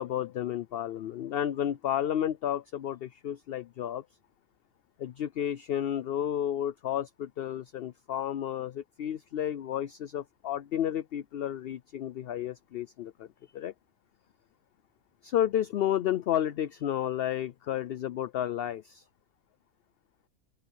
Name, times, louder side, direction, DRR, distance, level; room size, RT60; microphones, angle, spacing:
voice 1, 0.0-4.1 5.0-13.3 13.5-13.7 15.3-19.0, left 11 dB, 60° left, 0.6 m, -31 dB
open air
omnidirectional pair, 1.5 m